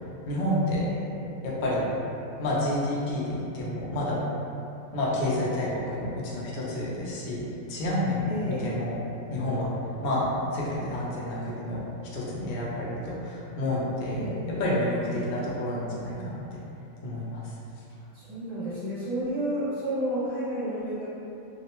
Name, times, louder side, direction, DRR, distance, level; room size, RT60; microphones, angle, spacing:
voice 1, 0.3-0.9 1.4-1.9 2.4-4.2 4.9-7.4 7.7-9.0 9.3-9.7 10.0-11.8 12.1-14.2 14.6-16.6 17.0-17.6, left 1 dB, 75° left, -6 dB, 0.4 m, -29 dB
voice 2, 0.8-1.1 8.3-8.7 14.1-14.4 15.1-15.4 18.1-21.0, equal, 25° right, -13 dB, 1.2 m, -31 dB
2.5 x 2.0 x 2.8 m, 2.8 s
omnidirectional pair, 1.4 m